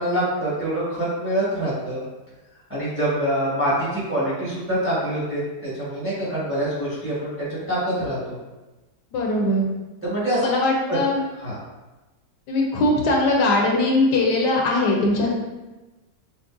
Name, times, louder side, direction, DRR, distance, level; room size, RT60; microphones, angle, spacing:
voice 1, 0.0-2.0 2.7-8.4 10.0-10.5 10.9-11.0 11.4-11.5, right 1 dB, 10° right, -8 dB, 0.9 m, -25 dB
voice 2, 9.1-9.6 10.4-11.2 12.5-15.3, left 2 dB, 75° left, -1 dB, 1.2 m, -20 dB
5.8 x 2.1 x 2.5 m, 1.1 s
omnidirectional pair, 1.9 m